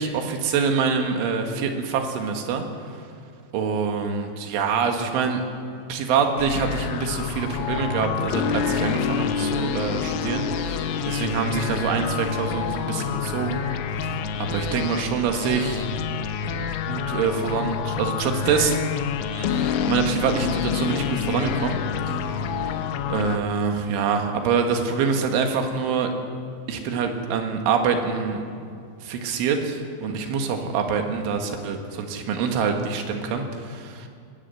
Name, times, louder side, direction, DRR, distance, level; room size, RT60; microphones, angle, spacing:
voice 1, 0.0-2.6 3.5-5.4 5.9-13.7 14.0-14.2 14.5-15.9 16.9-18.8 19.3-21.8 22.1-22.4 23.1-26.1 26.7-28.4 29.0-34.1, right 5 dB, 85° right, 4 dB, 4.2 m, -25 dB
sound 1, 6.4-23.4, left 7 dB, 85° left, 3.4 m, -27 dB
22.0 x 14.0 x 9.2 m, 2.3 s
omnidirectional pair, 5.4 m